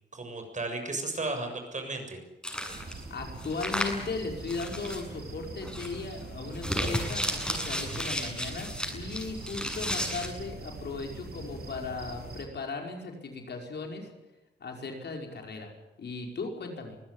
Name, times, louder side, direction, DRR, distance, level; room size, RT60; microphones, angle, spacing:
voice 1, 0.0-2.2, right 2 dB, 40° right, 5 dB, 7.1 m, -34 dB
sound 1, 2.4-3.0 3.4-4.1 4.5-5.0 5.6-6.0 6.5-10.3, equal, 5° left, 7.8 m, -33 dB
sound 2, 2.7-12.4, right 3 dB, 55° right, 7.8 m, -43 dB
voice 2, 3.1-14.1 14.6-15.7 16.0-17.0, left 4 dB, 65° left, 2 dB, 5.3 m, -37 dB
24.5 x 16.0 x 9.9 m, 1.0 s
cardioid pair, 65°, 19 cm